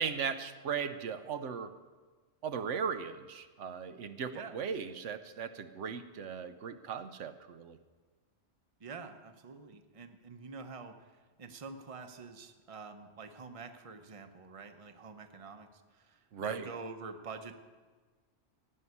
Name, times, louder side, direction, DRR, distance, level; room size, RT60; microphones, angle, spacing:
voice 1, 0.0-1.7 2.4-7.8 16.3-16.7, right 6 dB, 85° right, 10 dB, 1.1 m, -37 dB
voice 2, 8.8-10.9 11.4-17.5, right 4 dB, 30° right, 7 dB, 0.8 m, -46 dB
17.0 x 5.6 x 9.6 m, 1.4 s
omnidirectional pair, 1.2 m